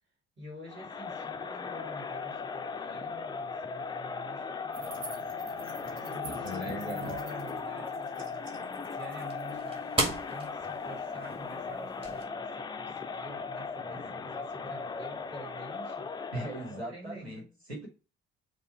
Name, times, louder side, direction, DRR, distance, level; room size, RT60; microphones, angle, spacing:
voice 1, 0.4-5.1 5.8-8.5 8.9-10.0 10.3-16.1 16.6-17.5, right 1 dB, 35° right, 2.5 m, -47 dB
Crowd, 0.7-16.8, left 5 dB, 15° left, 0.4 m, -38 dB
sound 1, 4.7-11.2, equal, 55° right, 1.3 m, -46 dB
voice 2, 6.4-7.2 16.3-17.9, right 1 dB, 90° right, 1.0 m, -39 dB
sound 2, 6.9-12.2, right 2 dB, 15° right, 1.5 m, -38 dB
5.3 x 2.0 x 4.3 m
figure-of-eight pair, 50°, 31 cm